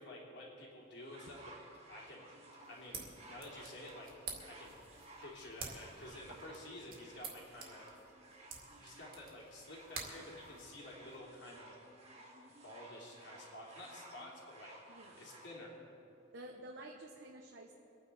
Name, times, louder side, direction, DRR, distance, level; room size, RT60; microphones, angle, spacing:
voice 1, 0.0-1.4 1.7-2.2 2.6-4.1 4.5-4.7 5.2-7.9 8.8-11.8 12.6-14.7 15.2-15.8, left 1 dB, 70° left, -3 dB, 3.4 m, -51 dB
sound 1, 1.0-15.6 16.4-16.5, right 1 dB, 35° right, 1.9 m, -57 dB
sound 2, 2.6-11.2, right 5 dB, 50° right, 2.1 m, -51 dB
voice 2, 14.9-15.3 16.3-17.7, right 1 dB, 70° right, 0 dB, 1.1 m, -51 dB
23.5 x 9.5 x 4.2 m, 2.9 s
head